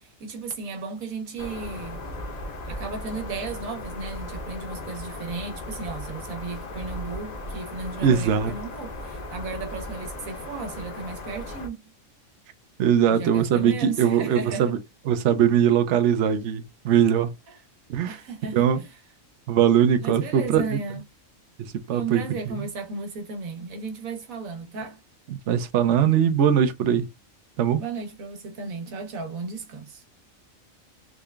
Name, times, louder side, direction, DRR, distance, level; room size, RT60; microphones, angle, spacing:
voice 1, 0.0-2.0 2.6-11.9 13.1-14.7 17.5-17.6 18.1-18.9 20.0-21.0 21.9-25.0 27.8-30.0, right 4 dB, 85° right, 1.5 m, -34 dB
sound 1, 1.4-11.7, left 1 dB, 35° left, 0.8 m, -37 dB
voice 2, 8.0-8.5 12.8-14.8 15.1-17.3 17.9-18.2 18.5-18.8 19.5-20.8 21.6-22.2 25.3-27.1 27.6-27.8, right 8 dB, 65° right, 0.9 m, -21 dB
3.7 x 2.4 x 3.3 m
omnidirectional pair, 1.4 m